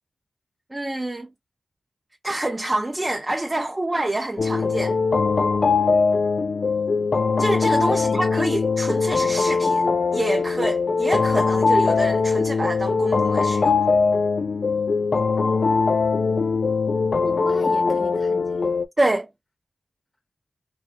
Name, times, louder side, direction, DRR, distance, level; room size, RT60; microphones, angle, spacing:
voice 1, 0.7-1.3 2.2-5.0 7.4-9.9 10.1-13.8 19.0-19.3, right 1 dB, 30° right, 0.5 m, -26 dB
sound 1, 4.4-18.9, left 4 dB, 65° left, 0.3 m, -21 dB
voice 2, 7.8-8.4 17.2-18.6, left 1 dB, 20° left, 0.6 m, -37 dB
2.2 x 2.2 x 2.6 m
cardioid pair, 40°, 0 cm